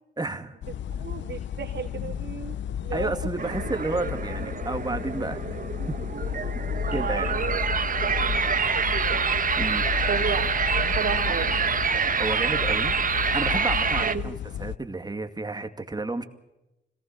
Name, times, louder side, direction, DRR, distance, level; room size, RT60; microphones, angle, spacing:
voice 1, 0.2-0.6 2.9-5.4 5.9-6.0 6.9-7.4 9.5-9.9 12.2-13.0 13.3-16.2, right 2 dB, 20° right, 7 dB, 2.3 m, -31 dB
sound 1, 0.6-14.8, left 9 dB, 90° left, 0.7 m, -33 dB
voice 2, 1.0-2.5 2.8-3.1 3.9-4.0 6.8-9.2 10.1-10.4 10.9-11.6 14.0-14.2, right 7 dB, 80° right, -2 dB, 3.4 m, -33 dB
sound 2, 3.4-14.2, right 6 dB, 50° right, 1.3 m, -27 dB
26.0 x 19.0 x 6.8 m, 0.94 s
cardioid pair, 85°, 18 cm